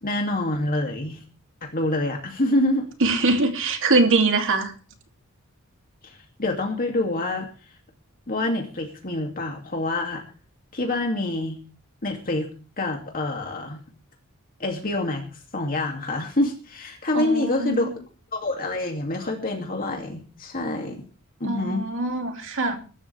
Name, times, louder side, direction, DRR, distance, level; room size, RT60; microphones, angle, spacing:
voice 1, 0.0-1.2 1.6-2.9 6.0-7.5 8.3-10.2 10.7-11.6 12.0-12.5 12.8-13.8 14.6-15.2 15.5-17.9 18.3-21.0 21.4-21.8, left 2 dB, 40° left, 2.6 m, -26 dB
voice 2, 3.0-4.7 17.1-17.9 21.4-22.8, right 3 dB, 60° right, 2.9 m, -22 dB
22.5 x 12.5 x 3.5 m
head